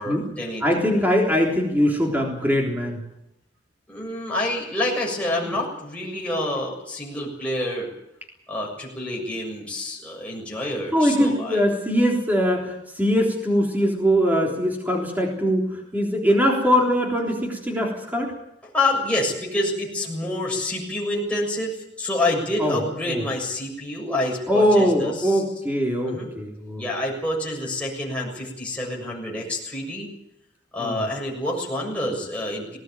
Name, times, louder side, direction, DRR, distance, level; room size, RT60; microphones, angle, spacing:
voice 1, 0.0-0.6 0.9-1.0 3.9-7.9 8.5-11.6 18.7-25.4 26.0-26.3 26.8-30.1 30.7-32.8, left 1 dB, 5° left, -3 dB, 7.0 m, -27 dB
voice 2, 0.6-3.0 5.4-5.5 10.9-18.3 22.6-22.8 23.1-23.2 24.5-26.8 30.8-31.1, equal, 10° right, 0 dB, 3.6 m, -22 dB
19.0 x 18.0 x 9.3 m, 0.84 s
head